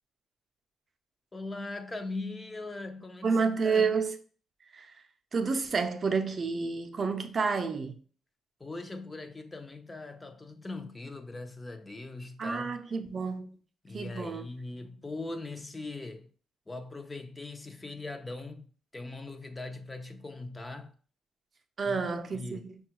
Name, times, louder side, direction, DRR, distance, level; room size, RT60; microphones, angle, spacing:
voice 1, 1.3-4.0 8.6-12.8 13.8-16.3 16.7-20.9 21.8-22.7, left 2 dB, 20° left, 0.5 m, -40 dB
voice 2, 3.2-4.2 4.7-4.9 5.3-8.0 12.4-13.5 13.9-14.4 21.8-22.8, right 5 dB, 40° right, 0.5 m, -29 dB
5.5 x 2.3 x 2.9 m
cardioid pair, 90°, 0 cm